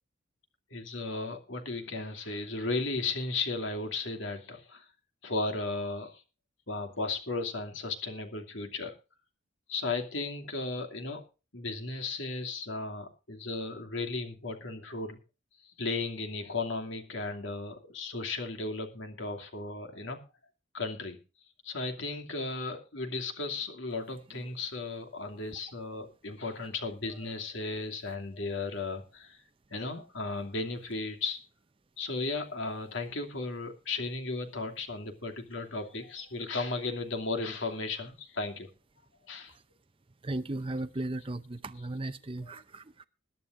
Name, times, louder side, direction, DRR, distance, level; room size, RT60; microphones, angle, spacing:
voice 1, 0.7-4.9 5.2-6.2 6.7-8.9 9.7-11.2 11.5-15.2 15.6-20.2 20.7-21.2 21.6-29.4 29.7-31.4 32.0-38.7 39.3-39.5, left 3 dB, 70° left, 2.7 m, -35 dB
voice 2, 40.2-43.1, right 2 dB, 25° right, 0.6 m, -36 dB
21.5 x 11.0 x 2.6 m
head